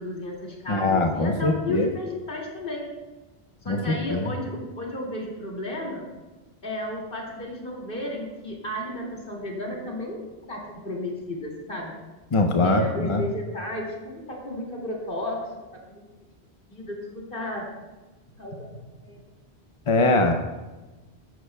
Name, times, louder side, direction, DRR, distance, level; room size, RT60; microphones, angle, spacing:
voice 1, 0.0-2.9 3.6-6.0 6.6-10.2 10.5-11.9 12.6-15.4 15.9-16.0 16.7-17.7 18.4-18.7 19.0-19.2 20.0-20.3, left 1 dB, 50° left, -2 dB, 2.7 m, -33 dB
voice 2, 0.7-1.9 3.7-4.2 12.3-12.8 13.1-13.2 19.9-20.3, left 2 dB, 35° left, 4 dB, 0.6 m, -22 dB
14.5 x 11.0 x 2.3 m, 1.2 s
omnidirectional pair, 1.1 m